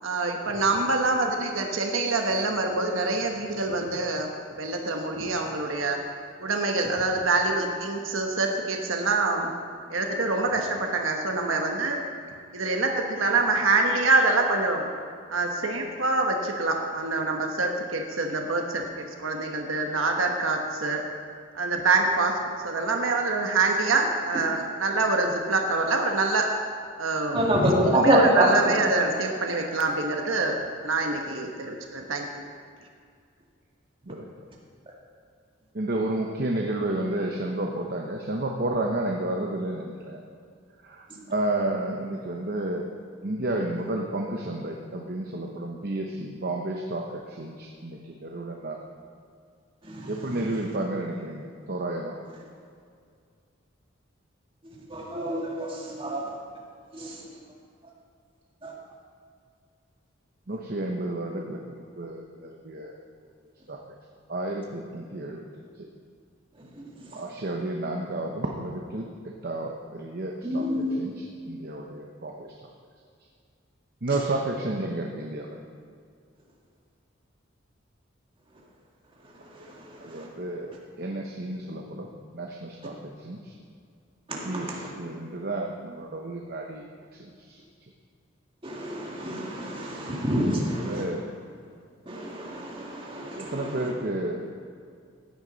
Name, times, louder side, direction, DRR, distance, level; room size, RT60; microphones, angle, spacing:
voice 1, 0.0-4.3 4.6-6.0 6.4-9.5 9.9-12.0 12.5-14.9 15.3-21.0 21.5-22.4 22.6-26.5 27.0-27.4 28.0-32.4, right 3 dB, 75° right, 2 dB, 1.2 m, -25 dB
voice 2, 27.3-28.6 41.1-41.2 49.8-50.6 54.6-56.4 56.9-57.4 58.6-58.7 66.6-67.2 70.4-71.0 74.1-74.2 79.2-80.3 84.3-84.9 88.6-91.2 92.1-93.9, right 1 dB, 25° right, -3 dB, 2.0 m, -27 dB
voice 3, 35.7-40.2 40.8-42.9 43.2-48.8 50.0-52.1 60.5-62.9 63.7-63.8 64.3-65.4 65.8-65.9 67.1-69.1 69.4-70.6 71.0-71.1 71.5-72.7 74.0-75.6 80.0-82.1 82.3-83.5 84.4-87.9 90.8-91.2 93.3-94.5, right 1 dB, 50° right, 1 dB, 0.9 m, -31 dB
15.5 x 9.4 x 4.0 m, 2.2 s
head